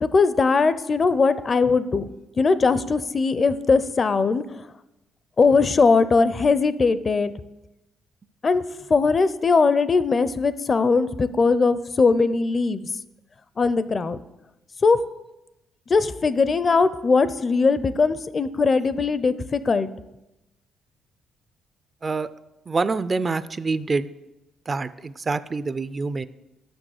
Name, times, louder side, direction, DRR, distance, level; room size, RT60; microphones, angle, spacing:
voice 1, 0.0-2.1 2.4-4.4 5.4-7.3 8.4-8.6 8.9-12.9 13.6-14.2 14.8-15.0 15.9-19.9, left 4 dB, 35° left, 15 dB, 0.4 m, -20 dB
voice 2, 22.7-24.1 24.7-26.3, right 4 dB, 30° right, 15 dB, 0.3 m, -26 dB
6.5 x 6.1 x 6.5 m, 0.94 s
cardioid pair, 90°, 0 cm